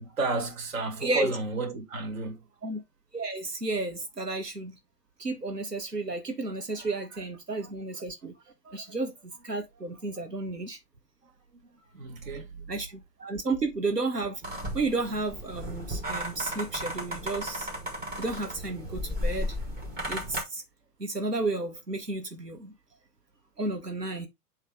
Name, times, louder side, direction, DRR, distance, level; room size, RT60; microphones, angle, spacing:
voice 1, 0.0-2.5 6.7-7.2 7.6-7.7 8.6-9.0 11.2-12.7, right 2 dB, 55° right, 1.9 m, -34 dB
voice 2, 1.0-1.3 2.6-2.8 3.1-4.8 5.2-8.3 8.7-9.1 9.4-10.8 12.7-14.4 14.7-17.7 18.2-19.6 20.1-20.6 21.0-22.7 23.6-24.3, right 3 dB, 90° right, 1.3 m, -32 dB
sound 1, 14.4-20.4, equal, 20° right, 2.3 m, -34 dB
7.8 x 3.3 x 3.7 m
figure-of-eight pair, 115°, 47 cm